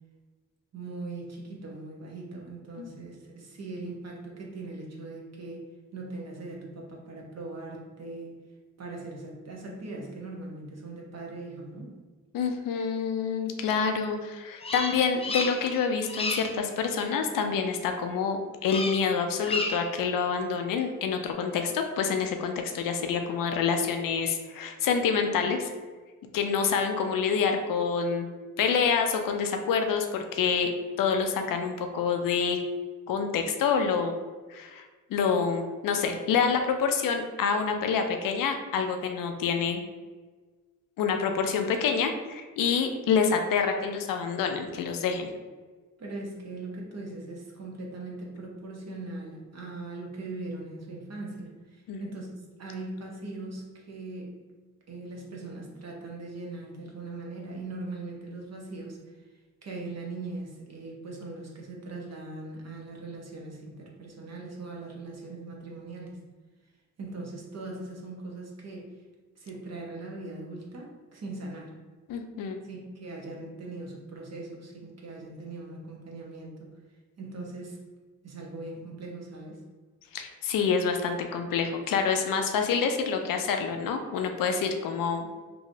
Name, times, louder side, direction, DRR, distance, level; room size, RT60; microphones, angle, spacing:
voice 1, 0.7-5.7 5.9-8.4 8.8-11.9 46.0-52.3 52.6-54.4 54.9-59.0 59.6-66.2 67.0-68.9 69.3-71.7 72.6-76.7 77.2-77.8 78.2-79.6, right 2 dB, 50° right, -2 dB, 0.9 m, -40 dB
voice 2, 12.3-25.7 26.3-28.3 28.6-30.7 31.0-32.6 33.1-34.1 34.5-39.8 41.0-45.3 51.9-52.0 72.1-72.6 80.1-85.3, left 6 dB, 75° left, 5 dB, 0.5 m, -27 dB
Bird vocalization bird call bird song, 14.6-15.8 16.1-16.6 18.6-19.1 19.4-20.0, left 3 dB, 20° left, 0.4 m, -32 dB
3.0 x 2.7 x 2.6 m, 1.4 s
cardioid pair, 55°, 34 cm